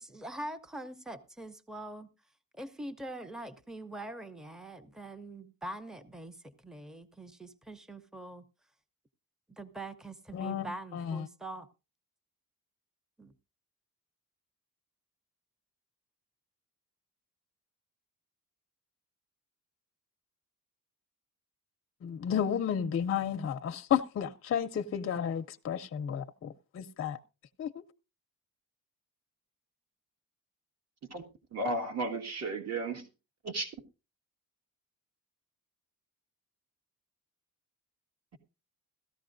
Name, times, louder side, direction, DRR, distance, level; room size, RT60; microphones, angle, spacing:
voice 1, 0.0-2.1 2.5-8.5 9.5-11.7 13.2-13.3, right 1 dB, ahead, 0.6 m, -43 dB
voice 2, 10.3-11.3 22.0-27.2 27.6-27.8, left 8 dB, 40° left, 0.5 m, -32 dB
voice 3, 31.5-33.1 33.4-33.7, right 2 dB, 50° right, 1.8 m, -34 dB
16.5 x 13.5 x 2.6 m
wide cardioid pair, 155°, 34 cm